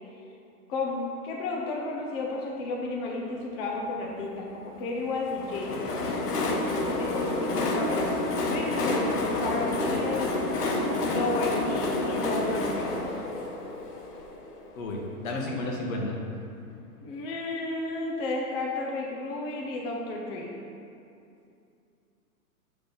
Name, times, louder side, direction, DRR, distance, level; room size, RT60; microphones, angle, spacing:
voice 1, 0.7-5.9 7.0-9.1 9.4-10.3 11.0-12.9 17.0-20.5, left 2 dB, 40° left, -1 dB, 1.1 m, -32 dB
Train, 5.2-14.9, left 2 dB, 80° left, 1.2 m, -29 dB
voice 2, 14.8-16.2, left 2 dB, 60° left, -1 dB, 1.6 m, -32 dB
7.2 x 3.8 x 5.5 m, 2.5 s
hypercardioid pair, 130°, 46 cm